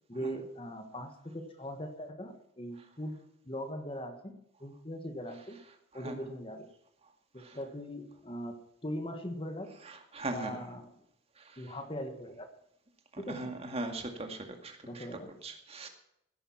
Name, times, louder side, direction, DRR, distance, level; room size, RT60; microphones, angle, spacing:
voice 1, 0.1-5.6 5.9-6.7 7.3-9.7 10.3-10.9 11.6-12.5 13.2-13.6 14.8-15.3, equal, 25° left, 7 dB, 1.4 m, -40 dB
voice 2, 9.9-10.6 11.4-11.7 13.1-15.1 15.4-15.9, right 2 dB, 30° right, 5 dB, 2.1 m, -40 dB
16.5 x 11.0 x 5.8 m, 0.78 s
head